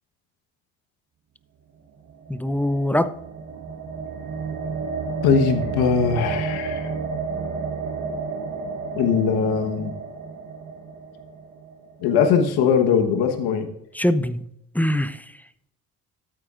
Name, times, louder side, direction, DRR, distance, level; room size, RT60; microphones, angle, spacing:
sound 1, 2.1-12.3, right 4 dB, 55° right, 3.1 m, -31 dB
voice 1, 2.3-3.1 13.9-15.2, left 1 dB, 5° left, 13 dB, 0.6 m, -23 dB
voice 2, 5.2-6.9 8.9-9.9 12.0-13.7, left 6 dB, 80° left, 6 dB, 1.3 m, -20 dB
13.0 x 8.8 x 2.5 m, 0.78 s
supercardioid pair, 65°, 38 cm